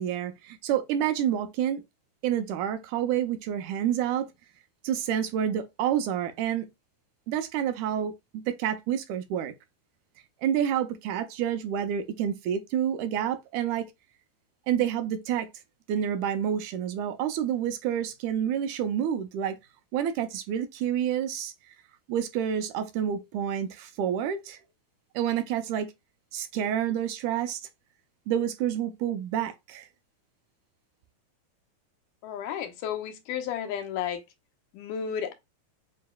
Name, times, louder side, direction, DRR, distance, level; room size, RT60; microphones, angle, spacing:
voice 1, 0.0-1.8 2.2-4.3 4.8-6.7 7.3-9.5 10.4-13.9 14.7-15.5 15.9-19.6 19.9-21.5 22.1-24.6 25.2-25.9 26.3-27.6 28.3-29.9, right 9 dB, 80° right, 2.0 m, -28 dB
voice 2, 32.2-34.2 34.7-35.3, left 8 dB, 80° left, 2.4 m, -32 dB
6.7 x 2.8 x 2.2 m
omnidirectional pair, 3.7 m